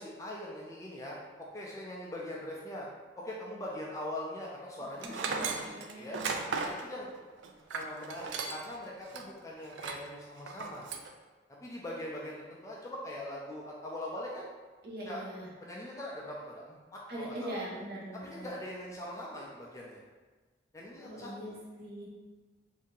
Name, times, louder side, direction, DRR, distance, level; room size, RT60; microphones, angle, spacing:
voice 1, 0.0-2.9 3.2-6.2 6.6-7.1 7.7-10.9 11.6-14.5 15.0-15.2 15.6-17.6 18.2-20.0 20.7-21.5, left 1 dB, 15° left, -4 dB, 0.4 m, -42 dB
voice 2, 5.0-6.4 14.8-15.5 17.1-18.5 21.0-22.0, right 1 dB, 55° right, -5 dB, 0.9 m, -42 dB
Tools, 5.0-8.8 9.1-9.2 9.7-10.1 10.5-11.1, right 5 dB, 85° right, 0.3 m, -36 dB
2.7 x 2.6 x 3.7 m, 1.3 s
head